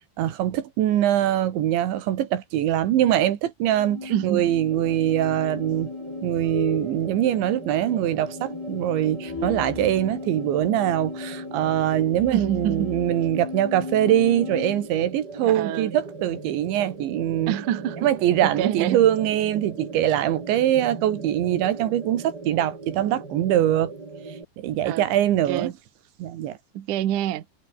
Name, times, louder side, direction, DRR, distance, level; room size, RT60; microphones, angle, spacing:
voice 1, 0.2-5.9 6.2-17.6 18.0-23.9 24.6-25.7 26.2-26.6, right 12 dB, 80° right, 4.2 m, -23 dB
sound 1, 3.7-14.9, left 4 dB, 60° left, 9.4 m, -36 dB
voice 2, 4.1-4.5 12.3-13.0 15.4-15.9 17.5-18.1 18.4-19.0 19.8-19.9 24.8-25.1 25.4-25.7 26.7-27.5, right 11 dB, 60° right, 2.5 m, -26 dB
sound 2, 4.7-24.4, right 3 dB, 20° right, 4.2 m, -40 dB
omnidirectional pair, 5.2 m